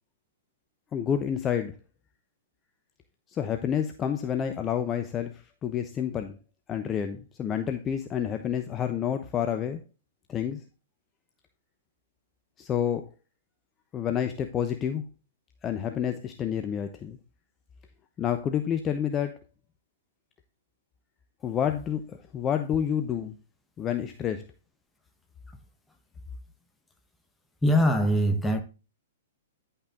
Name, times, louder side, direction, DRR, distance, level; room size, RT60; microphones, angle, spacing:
voice 1, 0.9-1.7 3.3-6.4 6.7-9.8 10.3-10.6 12.6-13.0 13.9-15.0 15.6-17.2 18.2-19.3 21.4-23.3 23.8-24.4, left 9 dB, 25° left, 0.9 m, -29 dB
voice 2, 27.6-28.6, equal, 10° left, 1.3 m, -22 dB
10.5 x 5.7 x 3.7 m
hypercardioid pair, 115°, 0 cm